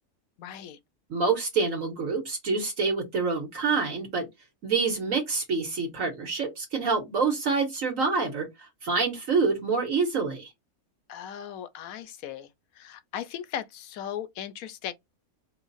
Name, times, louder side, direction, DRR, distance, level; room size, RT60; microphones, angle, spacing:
voice 1, 0.4-0.8 11.1-12.5 12.8-14.9, left 10 dB, 70° left, 0.9 m, -37 dB
voice 2, 1.1-4.3 4.6-10.5, right 4 dB, 60° right, 1.5 m, -27 dB
5.5 x 2.0 x 4.0 m
omnidirectional pair, 1.6 m